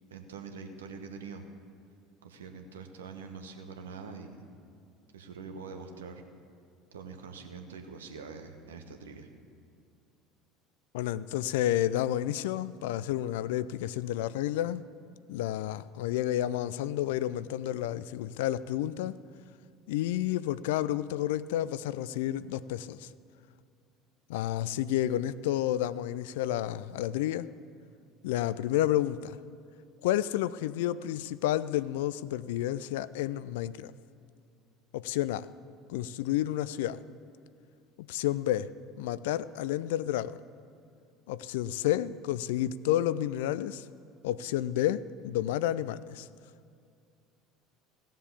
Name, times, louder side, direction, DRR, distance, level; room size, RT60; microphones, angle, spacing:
voice 1, 0.1-1.4 2.2-4.5 5.1-6.2 6.9-9.3, right 5 dB, 80° right, 5 dB, 1.1 m, -44 dB
voice 2, 10.9-14.8 15.3-19.2 19.9-23.1 24.3-27.5 28.2-29.4 30.0-33.9 34.9-35.5 35.9-37.0 38.1-38.7 39.0-40.4 41.3-43.8 44.2-46.3, left 13 dB, 70° left, 17 dB, 0.4 m, -30 dB
16.0 x 7.4 x 8.4 m, 2.3 s
figure-of-eight pair, 65°, 0 cm